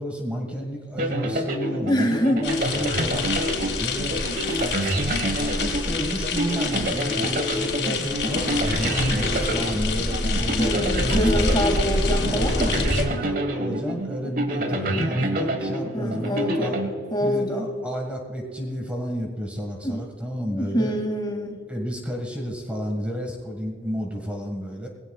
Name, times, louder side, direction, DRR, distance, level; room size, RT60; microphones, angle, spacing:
voice 1, 0.0-11.5 12.3-12.5 12.7-16.8 17.2-20.9 21.7-24.9, equal, 5° right, 1 dB, 1.7 m, -31 dB
sound 1, 1.0-17.5, right 1 dB, 50° right, 1.5 m, -28 dB
voice 2, 1.9-2.4 10.6-13.0 14.6-15.3 15.9-16.8 17.1-17.7 19.8-20.0 20.5-21.6, equal, 25° left, 3 dB, 2.3 m, -25 dB
sound 2, 2.4-13.0, left 3 dB, 70° left, 3.2 m, -27 dB
20.0 x 17.5 x 2.4 m, 2.1 s
head